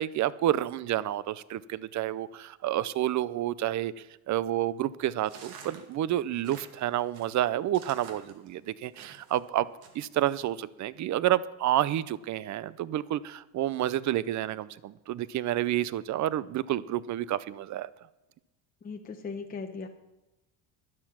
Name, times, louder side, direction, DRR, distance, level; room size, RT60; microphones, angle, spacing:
voice 1, 0.0-3.9 4.3-9.7 9.9-17.9, right 13 dB, 45° right, 18 dB, 0.6 m, -29 dB
sound 1, 5.2-9.4 9.8-10.3, right 6 dB, 90° right, 2.1 m, -49 dB
voice 2, 18.8-19.9, left 4 dB, 20° left, 3 dB, 0.8 m, -38 dB
12.0 x 11.0 x 5.9 m, 1.0 s
cardioid pair, 125°, 43 cm